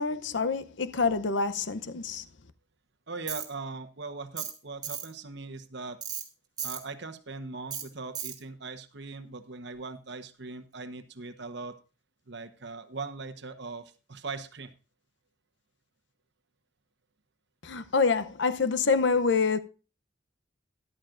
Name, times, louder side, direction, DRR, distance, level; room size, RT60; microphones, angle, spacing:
voice 1, 0.0-2.2 17.6-19.6, left 4 dB, 65° left, 0.7 m, -26 dB
voice 2, 3.1-6.0 6.6-11.8 12.3-14.7, right 3 dB, 60° right, 1.1 m, -40 dB
Tools, 3.3-3.5 4.4-4.6 4.8-5.1 6.0-6.2 6.6-6.8 7.7-7.8 8.1-8.4, right 8 dB, 20° right, 2.0 m, -35 dB
13.5 x 11.5 x 2.5 m
head